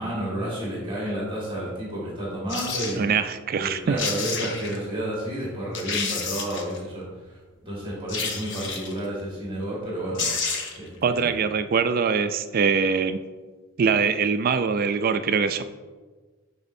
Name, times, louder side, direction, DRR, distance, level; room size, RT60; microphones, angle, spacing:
voice 1, 0.0-3.1 3.6-10.3 10.8-11.4, right 1 dB, 25° right, -6 dB, 1.6 m, -31 dB
sound 1, 2.5-3.0 3.7-3.8 4.0-4.8 5.3-5.4 5.7-6.8 8.1-9.0 9.8-9.9 10.1-10.9 11.2-11.3, left 5 dB, 55° left, 0.8 m, -30 dB
voice 2, 3.0-4.0 11.0-13.2 13.8-15.6, right 5 dB, 40° right, 10 dB, 0.3 m, -23 dB
10.5 x 4.2 x 2.6 m, 1.3 s
head